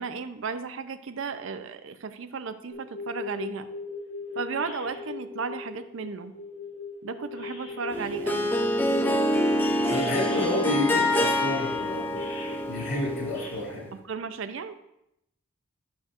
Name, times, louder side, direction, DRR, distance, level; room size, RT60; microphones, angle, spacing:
voice 1, 0.0-3.7 4.4-6.3 7.0-8.5 13.9-14.8, right 5 dB, 60° right, 10 dB, 0.5 m, -34 dB
sound 1, 2.7-8.3 8.9-13.5, left 4 dB, 70° left, 2.3 m, -38 dB
Harp, 7.9-13.7, left 1 dB, 10° left, 0.5 m, -26 dB
voice 2, 9.9-12.2 12.7-13.9, left 1 dB, 90° left, -2 dB, 3.0 m, -29 dB
11.0 x 6.2 x 2.5 m, 0.82 s
head